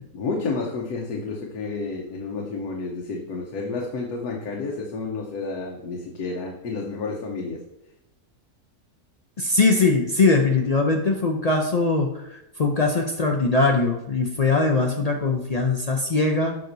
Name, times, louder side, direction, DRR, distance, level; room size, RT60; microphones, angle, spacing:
voice 1, 0.1-7.6, left 4 dB, 85° left, 0 dB, 1.4 m, -30 dB
voice 2, 9.4-16.6, left 3 dB, 70° left, 2 dB, 0.3 m, -21 dB
7.6 x 5.9 x 2.6 m, 0.89 s
omnidirectional pair, 1.6 m